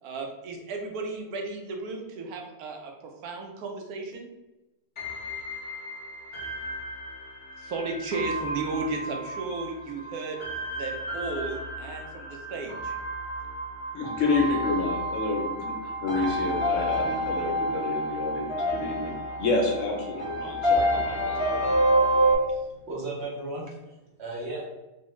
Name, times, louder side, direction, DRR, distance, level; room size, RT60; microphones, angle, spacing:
voice 1, 0.0-4.3 7.6-10.4 10.8-12.9, right 3 dB, 80° right, 2 dB, 1.1 m, -34 dB
sound 1, 5.0-22.3, right 1 dB, 30° left, 0.6 m, -29 dB
voice 2, 13.9-21.8, left 3 dB, 65° left, 0 dB, 0.9 m, -29 dB
voice 3, 22.5-24.7, right 2 dB, 60° right, -3 dB, 0.8 m, -36 dB
3.1 x 2.2 x 3.0 m, 1.0 s
omnidirectional pair, 1.6 m